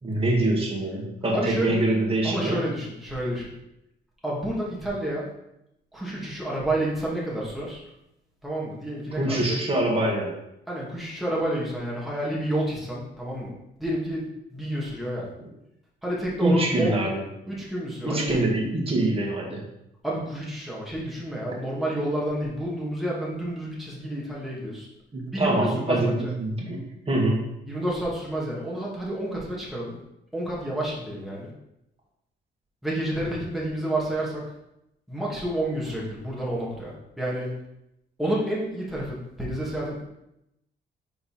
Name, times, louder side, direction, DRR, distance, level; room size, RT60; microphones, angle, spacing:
voice 1, 0.0-2.6 9.2-10.3 16.4-17.2 18.0-19.6 25.1-27.4, right 1 dB, 30° right, -2 dB, 2.1 m, -24 dB
voice 2, 1.3-1.8 2.2-3.5 4.2-5.3 5.9-7.8 8.4-9.6 10.7-13.5 13.8-15.3 16.0-17.0 17.5-18.4 20.0-24.9 25.3-26.3 27.7-30.0 30.3-31.5 32.8-34.5 35.1-37.5 38.2-40.0, right 1 dB, ahead, -5 dB, 2.2 m, -29 dB
5.4 x 4.3 x 4.4 m, 0.83 s
cardioid pair, 90°, 20 cm